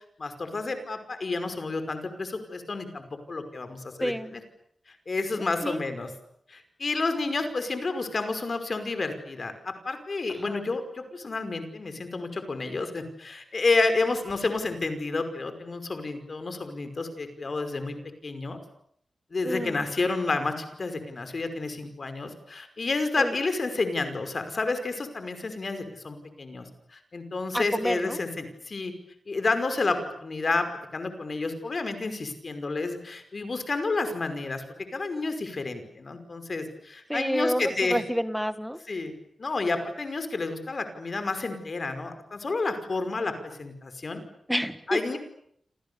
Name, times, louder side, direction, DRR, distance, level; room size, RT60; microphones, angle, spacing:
voice 1, 0.2-4.4 4.9-6.1 6.5-18.0 18.2-18.6 19.3-26.7 26.9-28.9 29.3-30.7 30.9-34.6 34.9-38.0 38.9-39.1 39.4-43.3 43.6-44.2 44.9-45.2, left 3 dB, 45° left, 8 dB, 5.4 m, -30 dB
voice 2, 4.0-4.3 5.6-5.8 10.5-10.6 19.4-19.8 23.2-23.3 27.5-28.2 37.1-38.8 44.5-45.2, equal, ahead, 11 dB, 1.8 m, -29 dB
29.5 x 27.5 x 7.1 m, 0.69 s
wide cardioid pair, 135°, 0 cm